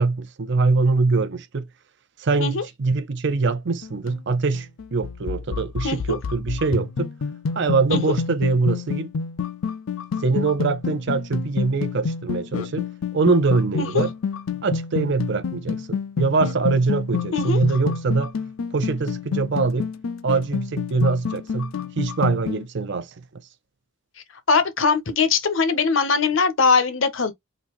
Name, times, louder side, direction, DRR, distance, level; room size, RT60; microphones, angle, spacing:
voice 1, 0.0-1.7 2.2-7.1 7.5-9.1 10.2-12.9 13.1-14.1 14.6-18.3 18.7-19.9 20.2-23.1, right 4 dB, 60° right, 0.6 m, -23 dB
sound 1, 3.7-22.6, left 6 dB, 85° left, 0.5 m, -29 dB
voice 2, 5.8-6.2 7.9-8.1 13.8-14.0 17.3-17.6 24.5-27.3, left 4 dB, 65° left, 0.9 m, -21 dB
3.9 x 2.7 x 3.0 m
head